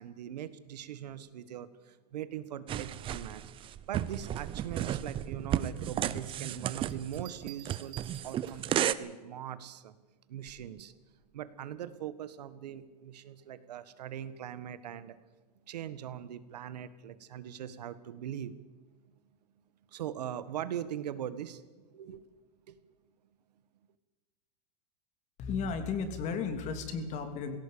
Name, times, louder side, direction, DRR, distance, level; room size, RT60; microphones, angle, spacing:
voice 1, 0.0-3.4 3.9-8.0 8.2-9.9 10.3-10.9 11.3-15.2 15.7-18.5 19.9-21.6 21.9-22.2 22.7-22.8, right 10 dB, 80° right, 14 dB, 1.6 m, -41 dB
sound 1, 2.7-8.9, right 11 dB, 25° right, 0.8 m, -33 dB
sound 2, 6.9-8.8 10.5-10.8, right 13 dB, 50° right, 6.6 m, -52 dB
voice 2, 25.4-27.6, left 5 dB, 35° left, 8 dB, 2.9 m, -34 dB
19.0 x 17.0 x 8.7 m, 1.3 s
supercardioid pair, 140°, 20 cm